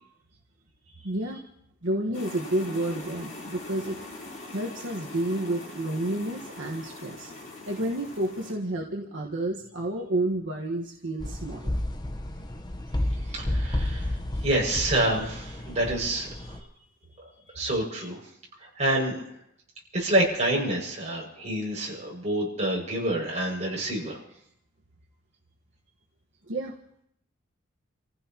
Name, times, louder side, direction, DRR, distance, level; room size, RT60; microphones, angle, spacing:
voice 1, 1.0-1.4 1.8-4.0 4.5-7.3 7.7-11.8 26.4-26.7, right 1 dB, 75° right, -1 dB, 1.4 m, -30 dB
sound 1, 2.1-8.5, left 2 dB, 40° left, 4.0 m, -42 dB
sound 2, 11.2-16.6, left 1 dB, 20° left, 1.0 m, -31 dB
voice 2, 13.3-16.6 17.2-17.3 17.5-18.2 18.6-19.2 19.9-24.2, right 1 dB, 35° right, -2 dB, 6.2 m, -28 dB
30.0 x 15.5 x 3.0 m, 0.73 s
head